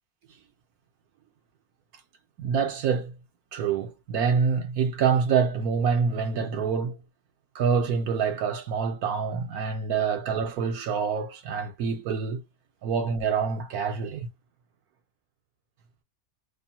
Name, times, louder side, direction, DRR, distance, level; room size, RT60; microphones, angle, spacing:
voice 1, 2.4-3.1 3.5-7.0 7.5-12.4 12.8-14.3, right 6 dB, 70° right, 1.1 m, -26 dB
2.8 x 2.2 x 2.7 m
omnidirectional pair, 1.7 m